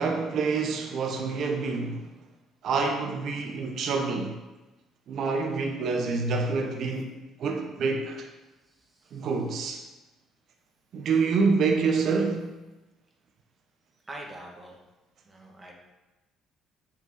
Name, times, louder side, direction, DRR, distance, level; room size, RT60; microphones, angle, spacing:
voice 1, 0.0-2.1 2.6-4.4 5.1-7.1 7.4-8.3 9.1-9.8 10.9-12.5, right 4 dB, 60° right, 1.1 m, -27 dB
voice 2, 8.7-9.3 14.0-14.8 15.2-15.7, right 1 dB, 20° right, 2.4 m, -44 dB
7.2 x 6.7 x 4.3 m
hypercardioid pair, 55°, 0 cm